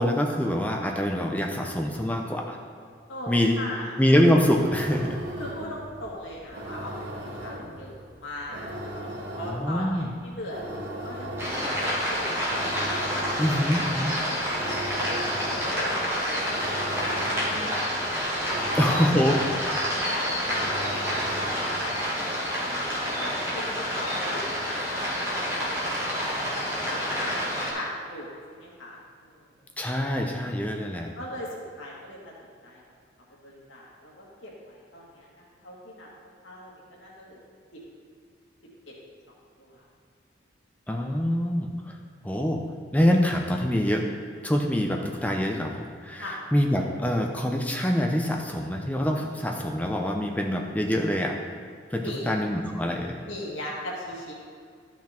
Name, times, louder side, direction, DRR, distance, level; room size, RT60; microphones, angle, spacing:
voice 1, 0.0-2.6 3.3-3.6 4.0-5.2 9.4-10.1 13.4-14.1 18.8-19.4 29.8-31.1 40.9-41.7 42.2-42.6 42.9-44.0 44.4-51.4 51.9-53.2, equal, 10° left, 2 dB, 0.6 m, -25 dB
voice 2, 3.1-4.0 5.4-8.7 9.0-9.1 9.4-12.3 13.0-13.6 14.9-15.2 15.6-18.0 18.4-19.4 19.7-22.6 23.0-26.2 26.9-27.4 27.7-29.4 31.1-31.5 31.8-32.3 32.6-32.8 33.4-36.1 36.4-37.4 39.6-39.8 46.2-46.4 52.0-52.3 53.3-54.3, left 1 dB, 90° left, -4 dB, 2.1 m, -39 dB
sound 1, 4.5-21.8, right 1 dB, 70° right, 1.5 m, -38 dB
sound 2, 11.4-27.7, equal, 15° right, 2.2 m, -28 dB
12.5 x 6.0 x 4.4 m, 2.2 s
head